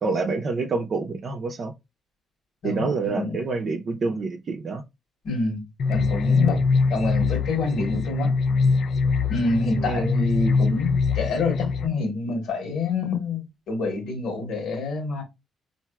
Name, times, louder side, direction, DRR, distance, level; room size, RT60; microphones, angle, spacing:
voice 1, 0.0-1.7 2.6-4.8 9.8-10.1, right 4 dB, 50° right, 0.6 m, -27 dB
voice 2, 2.6-3.4 5.2-6.6 6.9-8.3 9.3-15.2, left 3 dB, 75° left, 1.3 m, -27 dB
sound 1, 5.8-11.9, left 4 dB, 60° left, 0.3 m, -23 dB
4.5 x 2.6 x 2.3 m
cardioid pair, 90°, 0 cm